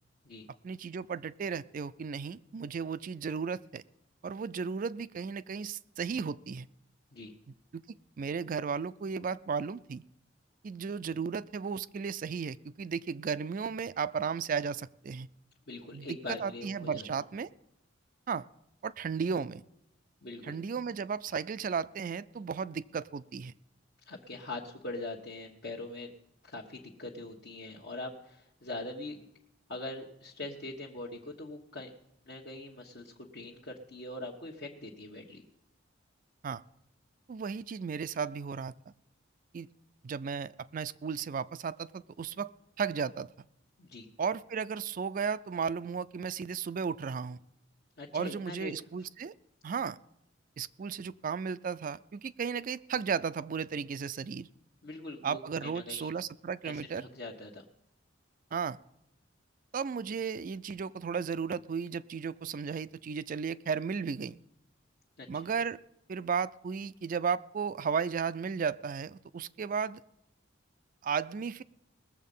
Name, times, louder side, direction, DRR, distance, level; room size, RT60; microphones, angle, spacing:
voice 1, 0.6-3.8 4.2-6.7 7.7-10.0 10.6-15.3 15.9-17.5 18.3-18.4 18.8-19.6 20.4-23.5 36.4-36.6 37.3-38.9 39.5-39.7 40.0-42.5 42.8-43.5 44.2-47.4 48.1-49.3 49.6-50.0 50.6-54.5 55.2-57.0 58.5-58.8 59.7-64.4 65.3-65.8 66.1-70.0 71.0-71.6, right 6 dB, 45° right, 16 dB, 0.4 m, -34 dB
voice 2, 15.7-17.2 20.2-20.6 24.1-26.1 26.4-29.3 29.7-31.9 32.2-35.4 43.8-44.1 48.0-48.7 54.8-56.1 56.6-57.6 65.2-65.3, left 2 dB, 60° left, -3 dB, 1.2 m, -42 dB
19.5 x 7.4 x 5.4 m, 0.84 s
head